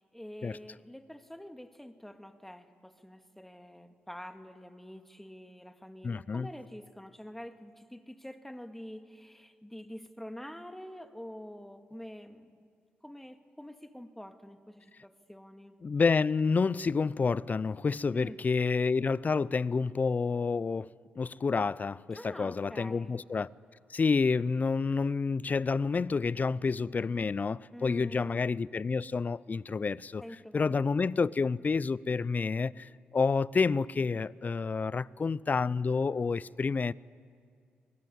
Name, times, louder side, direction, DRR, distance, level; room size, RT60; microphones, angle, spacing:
voice 1, 0.0-12.7 13.0-15.8 18.1-18.4 22.1-23.2 27.7-28.4 30.2-30.7 31.1-31.3, equal, 5° left, 2.0 m, -47 dB
voice 2, 6.0-6.5 15.8-23.5 23.9-30.2 30.5-36.9, left 4 dB, 40° left, 0.6 m, -29 dB
24.5 x 20.0 x 9.7 m
supercardioid pair, 45°, 4 cm